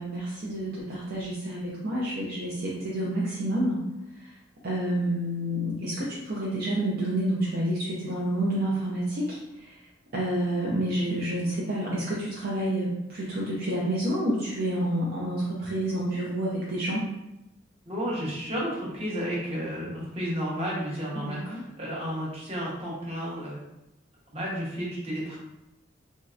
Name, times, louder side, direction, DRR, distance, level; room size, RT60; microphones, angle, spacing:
voice 1, 0.0-3.8 4.1-4.4 4.6-9.9 10.1-17.1 21.1-21.6, right 1 dB, 50° right, -6 dB, 0.5 m, -29 dB
voice 2, 17.9-23.6 24.3-25.4, equal, 30° right, -6 dB, 0.9 m, -32 dB
3.0 x 2.7 x 2.4 m, 0.91 s
head